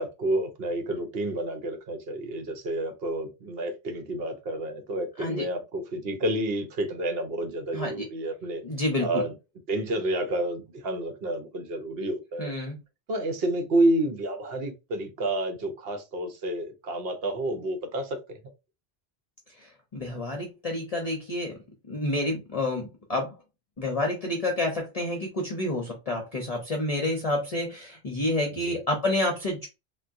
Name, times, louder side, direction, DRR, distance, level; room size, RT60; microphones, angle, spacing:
voice 1, 0.0-8.6 9.0-9.3 9.7-12.5 13.1-18.4 28.6-28.8, right 1 dB, 70° right, 0.9 m, -29 dB
voice 2, 7.7-8.0 8.6-9.2 12.4-12.8 19.6-21.5 21.9-23.3 23.8-29.7, left 1 dB, 40° left, 0.7 m, -29 dB
3.5 x 2.3 x 2.5 m
omnidirectional pair, 1.1 m